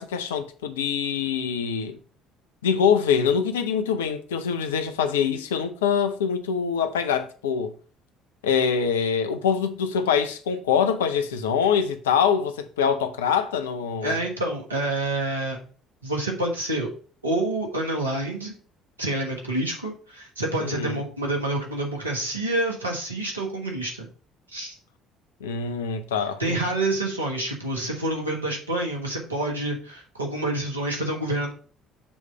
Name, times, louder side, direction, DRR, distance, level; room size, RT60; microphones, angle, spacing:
voice 1, 0.0-2.0 2.6-7.7 8.4-14.2 20.6-21.0 25.4-26.6, left 7 dB, 75° left, 0.6 m, -24 dB
voice 2, 14.0-15.6 16.0-16.9 17.2-18.6 19.0-24.1 24.5-24.7 26.4-31.5, right 2 dB, 85° right, 1.3 m, -27 dB
7.0 x 3.2 x 5.5 m
figure-of-eight pair, 55°, 0 cm